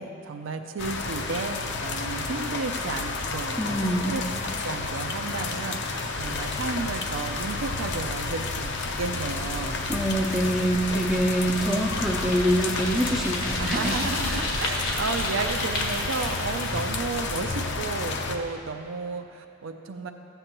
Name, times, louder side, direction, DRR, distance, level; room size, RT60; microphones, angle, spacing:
voice 1, 0.0-5.8 6.2-9.8 13.6-20.1, right 4 dB, 65° right, 6 dB, 0.5 m, -33 dB
sound 1, 0.8-18.4, left 3 dB, 55° left, 0.6 m, -31 dB
voice 2, 3.6-4.1 9.9-14.0 14.2-14.4, equal, 5° right, -2 dB, 0.4 m, -25 dB
Bicycle, 6.1-17.7, left 1 dB, 75° left, 1.5 m, -34 dB
15.5 x 7.9 x 3.0 m, 2.8 s
head